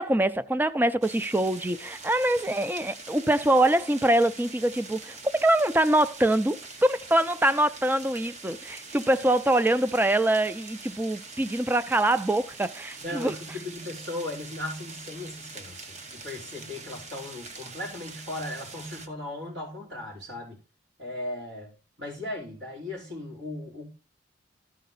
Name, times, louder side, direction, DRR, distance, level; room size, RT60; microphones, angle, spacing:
voice 1, 0.0-13.3, right 1 dB, 10° right, 0.3 m, -24 dB
sound 1, 1.0-19.1, right 3 dB, 35° right, 0.8 m, -44 dB
voice 2, 13.0-20.6 21.0-21.7 22.0-23.9, left 1 dB, 75° right, 4.6 m, -37 dB
13.5 x 5.1 x 3.9 m
head